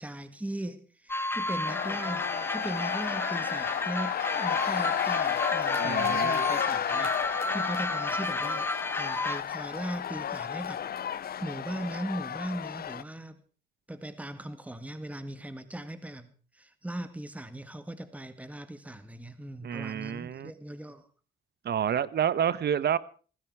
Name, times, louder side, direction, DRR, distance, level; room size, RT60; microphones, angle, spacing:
voice 1, 0.0-10.8 11.4-13.4 13.9-21.0, right 1 dB, 5° right, 10 dB, 1.8 m, -39 dB
sound 1, 1.1-9.4, left 2 dB, 10° left, 1.2 m, -32 dB
sound 2, 1.6-13.0, left 9 dB, 50° left, 0.8 m, -32 dB
voice 2, 5.8-6.5 19.6-20.5 21.6-23.0, right 9 dB, 55° right, 17 dB, 1.2 m, -29 dB
19.0 x 15.5 x 4.8 m, 0.40 s
cardioid pair, 90°, 20 cm